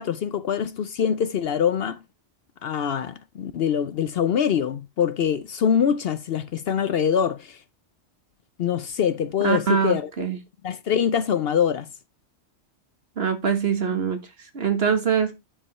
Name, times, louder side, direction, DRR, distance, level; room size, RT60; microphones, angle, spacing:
voice 1, 0.0-2.0 2.6-7.6 8.6-10.1 10.6-11.9, left 8 dB, 65° left, 0.8 m, -24 dB
voice 2, 9.4-10.4 13.2-14.2 14.5-15.3, right 7 dB, 60° right, 1.9 m, -23 dB
10.0 x 5.0 x 4.2 m
omnidirectional pair, 1.2 m